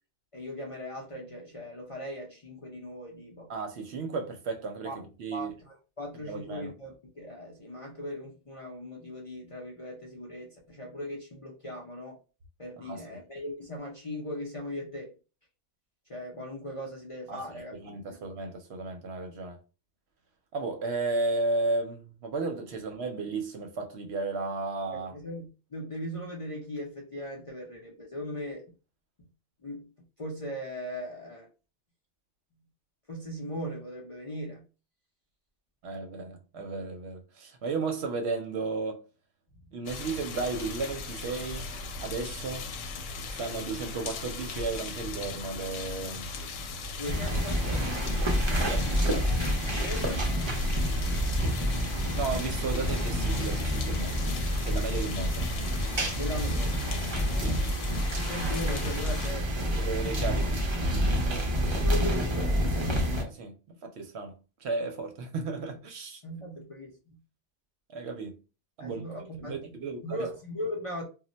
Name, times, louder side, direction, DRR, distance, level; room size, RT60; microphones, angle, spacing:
voice 1, 0.3-3.5 4.8-5.0 5.3-12.2 12.6-15.1 16.1-18.2 24.9-28.7 29.2-29.3 29.6-29.9 30.2-31.5 33.1-34.6 47.0-48.1 49.8-50.3 56.1-57.1 58.3-59.8 61.8-62.8 65.5-65.6 66.2-67.2 68.8-69.8 70.0-71.0, left 1 dB, 40° left, 0.5 m, -39 dB
voice 2, 3.5-5.5 6.2-6.7 12.8-13.2 17.3-19.6 20.5-25.1 35.8-39.0 39.7-41.7 42.0-42.7 43.3-46.3 48.3-49.3 52.1-54.3 54.6-55.5 57.4-57.7 59.8-60.5 63.1-63.5 63.8-64.3 64.6-66.2 67.9-68.4 68.8-69.0 69.4-70.3, right 3 dB, 65° right, 0.8 m, -34 dB
sound 1, 39.9-59.3, left 3 dB, 85° left, 0.9 m, -38 dB
sound 2, 47.0-63.2, equal, 45° right, 0.3 m, -28 dB
2.2 x 2.1 x 3.8 m
omnidirectional pair, 1.3 m